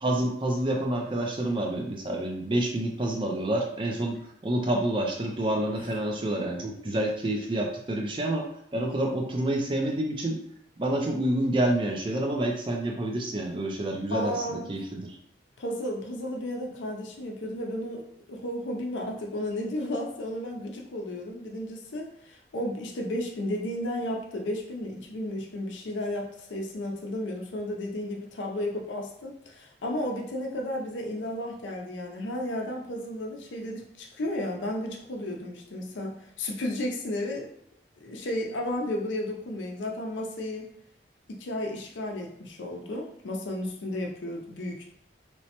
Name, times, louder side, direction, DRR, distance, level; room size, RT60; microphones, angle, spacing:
voice 1, 0.0-10.4 10.8-15.1, right 1 dB, 25° right, 2 dB, 0.4 m, -28 dB
voice 2, 14.1-14.7 15.6-37.5 38.0-40.7 41.3-44.9, left 1 dB, 90° left, 1 dB, 0.5 m, -33 dB
3.0 x 2.1 x 2.8 m, 0.74 s
head